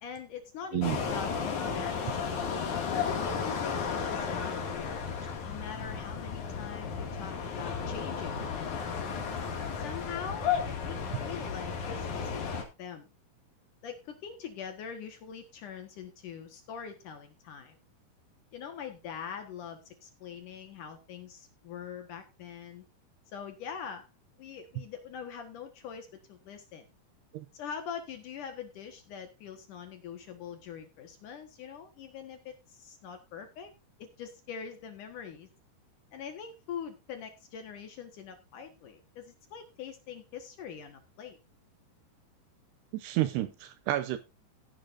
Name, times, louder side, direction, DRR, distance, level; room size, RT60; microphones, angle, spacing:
voice 1, 0.0-5.0 5.4-8.9 9.8-13.1 13.8-17.8 18.5-22.9 23.3-24.1 24.4-26.9 27.5-33.7 34.0-35.5 36.1-41.4, left 7 dB, 65° left, 2.1 m, -43 dB
sound 1, 0.8-12.6, left 6 dB, 50° left, 3.0 m, -33 dB
voice 2, 42.9-44.2, right 14 dB, 75° right, 2.5 m, -30 dB
15.5 x 10.5 x 2.6 m
omnidirectional pair, 5.4 m